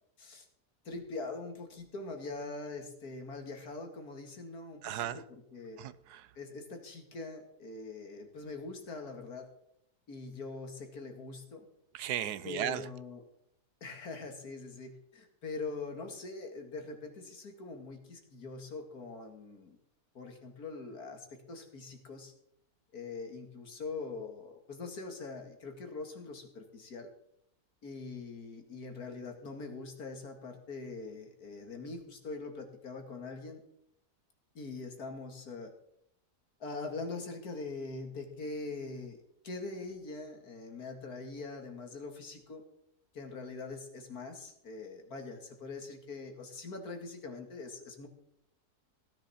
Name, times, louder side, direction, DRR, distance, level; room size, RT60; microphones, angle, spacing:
voice 1, 0.8-5.2 5.5-5.8 6.4-9.5 10.1-11.6 12.4-13.2 13.8-19.8 20.1-22.3 22.9-27.1 27.8-33.6 34.5-35.7 36.6-39.2 39.4-42.6 43.1-48.1, left 3 dB, 75° left, 2.6 m, -43 dB
voice 2, 4.8-5.2 5.8-6.3 11.9-12.9, right 11 dB, 85° right, 1.3 m, -36 dB
16.5 x 10.5 x 4.3 m
omnidirectional pair, 1.6 m